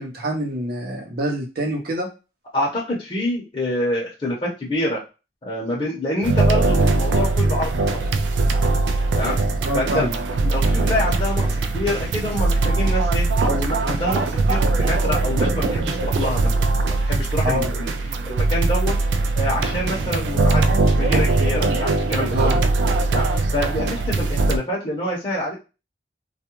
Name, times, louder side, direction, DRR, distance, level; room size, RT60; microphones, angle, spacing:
voice 1, 0.0-2.1 9.2-9.3 9.6-10.1 17.4-17.7 22.3-22.6, equal, 60° right, 1 dB, 0.7 m, -26 dB
voice 2, 2.5-5.0 5.4-8.0 9.1-9.4 9.7-10.1 10.4-16.5 16.8-17.9 18.2-19.0 19.3-22.3 23.1-25.5, left 1 dB, 30° left, -6 dB, 0.8 m, -26 dB
sound 1, 6.2-24.6, right 3 dB, 75° right, 0.3 m, -21 dB
2.3 x 2.2 x 2.9 m, 0.30 s
head